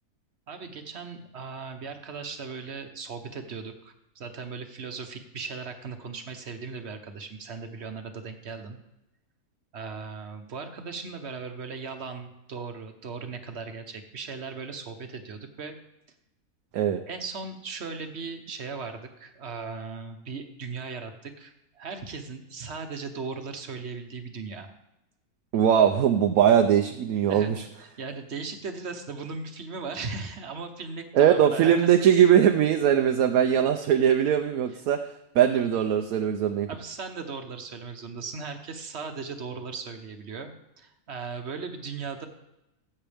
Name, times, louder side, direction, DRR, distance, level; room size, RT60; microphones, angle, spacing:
voice 1, 0.5-8.8 9.7-15.8 17.1-24.7 27.3-27.5 27.8-32.1 36.7-42.3, right 4 dB, 50° right, 6 dB, 1.3 m, -38 dB
voice 2, 25.5-27.6 31.1-35.0 35.3-36.7, right 9 dB, 75° right, 5 dB, 1.1 m, -21 dB
15.5 x 8.0 x 3.4 m, 0.92 s
omnidirectional pair, 1.5 m